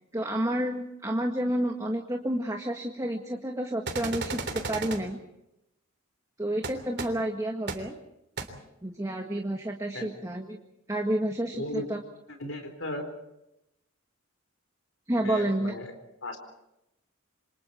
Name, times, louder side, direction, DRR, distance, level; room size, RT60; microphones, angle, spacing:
voice 1, 0.1-5.2 6.4-8.0 8.8-10.6 10.9-12.0 15.1-15.7, right 1 dB, 15° right, 2 dB, 1.7 m, -30 dB
sound 1, 3.9-5.0 6.6-6.7 7.0-7.1 7.7-7.8 8.4-8.5, right 4 dB, 55° right, 3.3 m, -33 dB
voice 2, 12.4-13.0 15.2-15.9 16.2-16.4, left 1 dB, 70° left, 5 dB, 4.2 m, -35 dB
28.0 x 26.0 x 4.5 m, 0.86 s
head